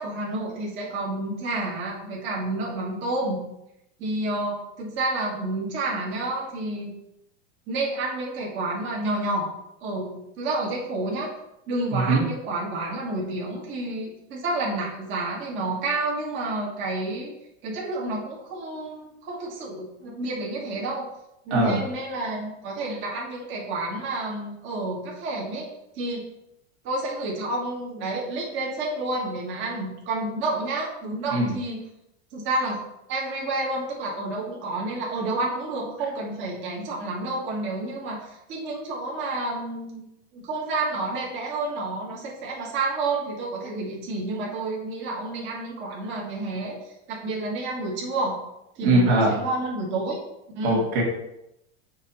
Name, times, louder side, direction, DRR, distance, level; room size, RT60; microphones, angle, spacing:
voice 1, 0.0-3.5 4.0-6.9 7.7-9.5 9.8-11.3 11.7-17.3 17.6-21.1 21.4-25.7 25.9-26.2 26.8-31.8 32.3-32.8 33.1-40.0 40.3-48.4 48.7-50.2 50.5-50.9, right 2 dB, 30° right, -3 dB, 1.5 m, -30 dB
voice 2, 11.9-12.2 21.5-21.8 31.3-31.5 48.8-49.3 50.6-51.0, right 2 dB, 55° right, -2 dB, 2.1 m, -21 dB
6.2 x 2.9 x 5.4 m, 0.84 s
supercardioid pair, 160°, 36 cm